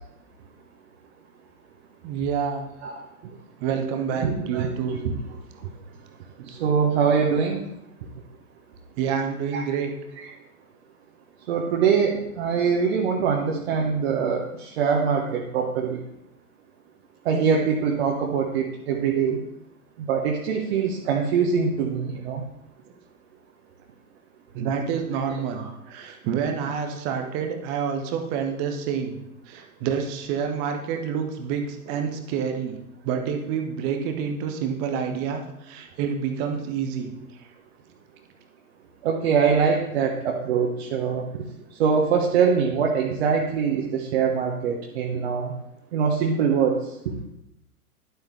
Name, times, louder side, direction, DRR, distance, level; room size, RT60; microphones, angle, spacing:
voice 1, 2.0-2.7 3.6-4.9 9.0-9.9 24.5-29.2 29.5-32.7 33.0-37.1, right 7 dB, 10° right, 5 dB, 0.4 m, -28 dB
voice 2, 4.1-5.1 5.6-5.7 6.4-7.6 9.5-9.7 10.2-10.3 11.5-16.0 17.2-19.4 20.0-22.4 25.5-25.7 39.0-41.4 41.8-45.5 45.9-46.9, right 6 dB, 45° right, 0 dB, 1.3 m, -23 dB
11.5 x 8.0 x 3.3 m, 0.83 s
figure-of-eight pair, 105°, 45 cm